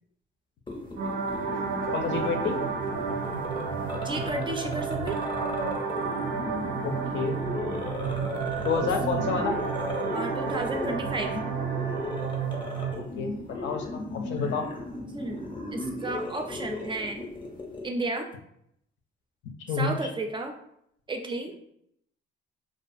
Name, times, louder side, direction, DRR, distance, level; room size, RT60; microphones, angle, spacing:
sound 1, 0.7-17.9, left 2 dB, 25° left, 0.6 m, -37 dB
sound 2, 1.0-12.9, right 5 dB, 80° right, 0.5 m, -31 dB
voice 1, 1.9-2.6 6.8-7.4 8.6-9.6 13.2-13.3 13.6-14.7 19.7-20.1, left 5 dB, 70° left, 4 dB, 0.5 m, -29 dB
voice 2, 4.0-5.2 8.8-8.9 10.1-11.3 15.1-17.3 17.8-18.3 19.7-20.5 21.1-21.5, right 2 dB, 25° right, 4 dB, 0.3 m, -33 dB
2.3 x 2.2 x 2.5 m, 0.73 s
cardioid pair, 90°, 20 cm